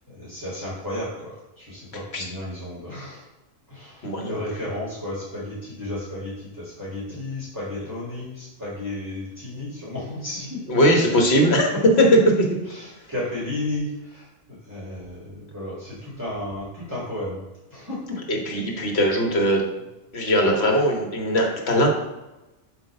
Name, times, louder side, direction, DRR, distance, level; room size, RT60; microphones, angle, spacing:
voice 1, 0.1-3.2 3.7-10.7 11.2-12.1 12.6-17.4 17.7-18.2, left 1 dB, 15° right, -8 dB, 1.7 m, -33 dB
voice 2, 4.0-4.4 7.8-7.9 10.7-11.7 12.0-12.2 18.3-19.6 20.1-21.9, equal, 65° left, 1 dB, 1.5 m, -20 dB
7.8 x 2.9 x 5.2 m, 1.0 s
omnidirectional pair, 1.2 m